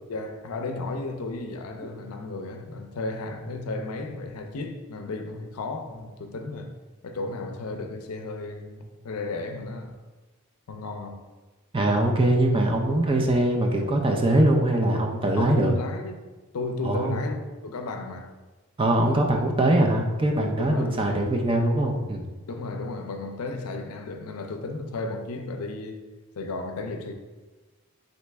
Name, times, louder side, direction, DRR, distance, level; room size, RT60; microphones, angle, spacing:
voice 1, 0.1-6.8 7.0-10.0 10.7-11.2 15.4-16.2 16.5-18.3 20.6-21.3 22.5-26.0 26.4-27.1, left 3 dB, 85° left, 0.5 m, -34 dB
voice 2, 11.7-15.7 16.8-17.2 18.8-22.2, right 1 dB, 25° right, 0.4 m, -22 dB
4.0 x 3.1 x 3.4 m
head